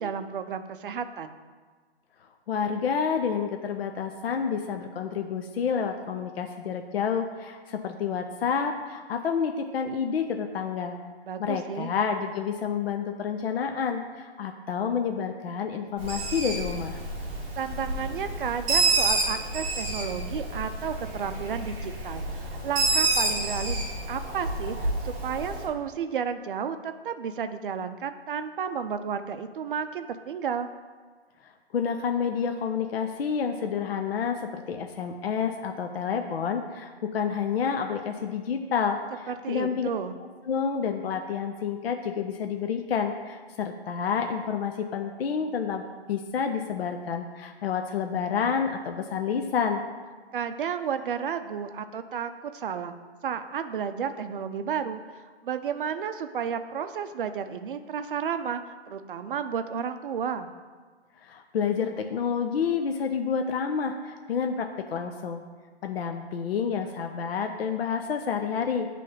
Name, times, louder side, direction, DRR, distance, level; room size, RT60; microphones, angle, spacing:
voice 1, 0.0-1.4 11.3-11.9 17.6-23.8 24.1-30.7 39.3-40.2 50.3-52.9 53.2-58.6 58.9-60.5, right 7 dB, 55° right, 9 dB, 0.5 m, -32 dB
voice 2, 2.5-11.0 11.4-17.0 31.4-39.9 40.5-45.8 46.1-49.8 61.2-65.4 65.8-68.9, left 6 dB, 65° left, 5 dB, 0.6 m, -29 dB
Bird, 16.0-25.6, right 3 dB, 20° right, 1.0 m, -29 dB
8.9 x 3.3 x 3.9 m, 1.5 s
hypercardioid pair, 160°, 33 cm